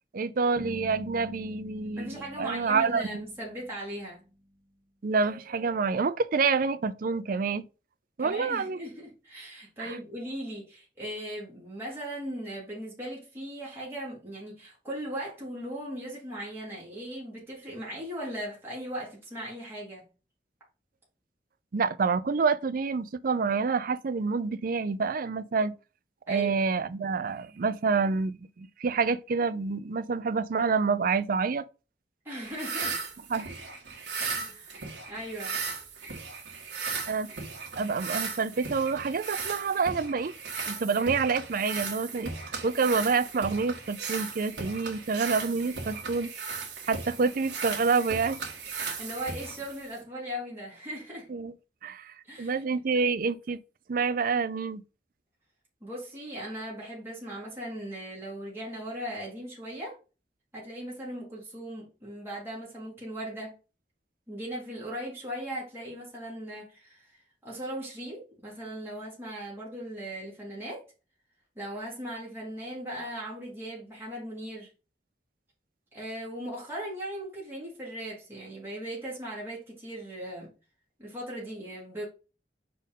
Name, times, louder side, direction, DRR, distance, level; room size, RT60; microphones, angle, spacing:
voice 1, 0.1-3.2 5.0-7.6 8.2-8.8 9.8-10.0 21.7-25.7 26.3-31.6 33.3-33.5 37.1-37.3 37.8-40.3 40.6-42.3 42.6-46.3 46.9-48.4 51.3-51.5 51.8-53.6 53.9-54.8, right 4 dB, 50° right, 0.5 m, -27 dB
sound 1, 0.5-4.5, equal, 30° right, 2.3 m, -45 dB
voice 2, 2.0-4.2 8.2-20.1 26.3-26.5 32.2-33.0 34.1-34.8 35.1-35.6 49.0-51.3 52.2-52.8 55.8-60.0 60.5-63.5 64.3-70.8 71.5-74.7 75.9-80.5 81.0-82.1, equal, 15° right, 2.9 m, -38 dB
sound 2, 32.4-50.0, right 5 dB, 80° right, 1.8 m, -37 dB
5.2 x 4.4 x 5.3 m
head